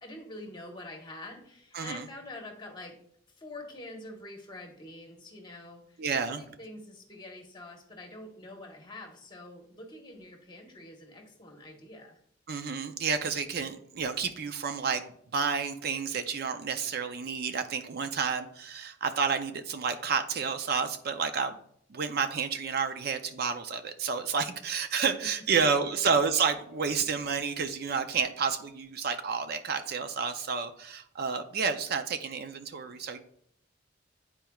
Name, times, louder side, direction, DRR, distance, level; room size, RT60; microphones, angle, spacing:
voice 1, 0.0-3.0 3.4-6.0 6.3-12.2 25.5-25.6, left 1 dB, 25° left, 2 dB, 1.1 m, -46 dB
voice 2, 1.7-2.1 6.0-6.4 12.5-15.0 15.3-21.6 21.9-33.2, right 5 dB, 55° right, 8 dB, 0.4 m, -30 dB
9.9 x 4.4 x 2.3 m, 0.67 s
head